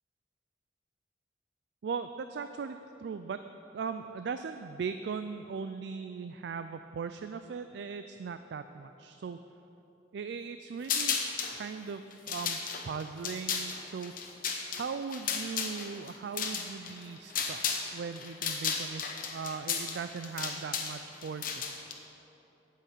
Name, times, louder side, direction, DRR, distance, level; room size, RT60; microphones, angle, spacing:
voice 1, 1.8-3.4 3.7-9.4 10.1-11.2 11.5-12.6 12.8-14.1 14.7-21.7, right 5 dB, 65° right, 9 dB, 0.3 m, -39 dB
sound 1, 10.8-11.6 12.1-17.9 18.2-21.9, left 6 dB, 50° left, 1.0 m, -34 dB
8.8 x 6.6 x 8.4 m, 2.9 s
head